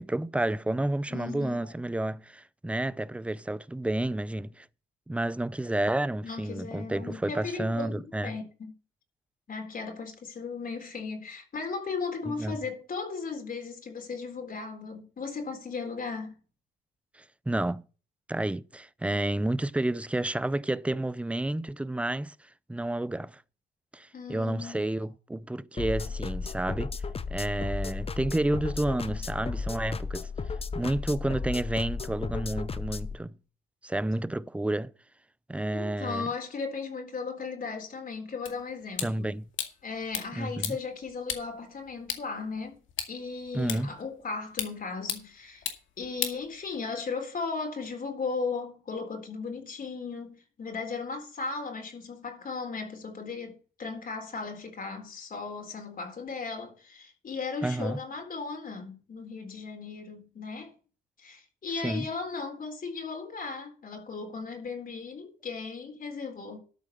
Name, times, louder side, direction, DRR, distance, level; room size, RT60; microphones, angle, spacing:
voice 1, 0.0-4.7 5.1-8.4 12.3-12.6 17.1-17.8 18.3-23.4 23.9-27.0 27.3-30.3 30.7-33.4 33.8-34.9 35.5-36.3 39.0-39.5 40.4-40.8 43.5-43.9 57.6-58.0 61.8-62.1, right 1 dB, 5° right, 0.5 m, -30 dB
voice 2, 1.1-1.7 6.2-8.7 9.5-16.3 24.1-24.8 35.7-39.3 39.8-42.8 43.1-45.6 46.0-60.7 61.2-66.6, left 4 dB, 45° left, 3.9 m, -36 dB
sound 1, 25.8-33.1, left 4 dB, 30° left, 0.8 m, -34 dB
sound 2, 38.5-47.1, left 9 dB, 80° left, 2.2 m, -39 dB
13.0 x 4.7 x 7.2 m
cardioid pair, 90°, 20 cm